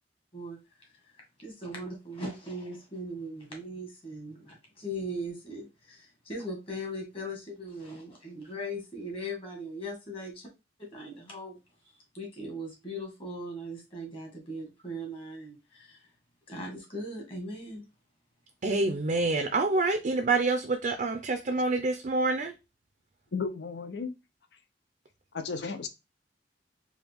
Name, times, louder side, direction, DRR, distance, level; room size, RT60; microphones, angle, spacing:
voice 1, 0.3-10.4 10.8-11.6 12.1-16.0 16.5-17.9, equal, 30° left, 1.6 m, -39 dB
voice 2, 18.6-22.5, right 3 dB, 45° right, 0.5 m, -27 dB
voice 3, 23.3-24.1 25.3-25.9, left 4 dB, 75° left, 0.6 m, -34 dB
4.7 x 2.3 x 3.4 m
head